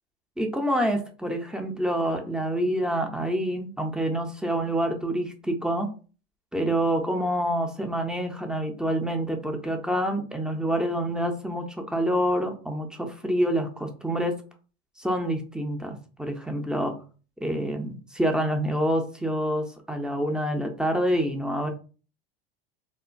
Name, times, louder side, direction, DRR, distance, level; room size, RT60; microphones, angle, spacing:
voice 1, 0.4-5.9 6.5-14.4 15.0-17.0 17.4-21.7, equal, 5° right, 4 dB, 0.4 m, -27 dB
3.0 x 2.1 x 2.5 m, 0.36 s
supercardioid pair, 100°, 31 cm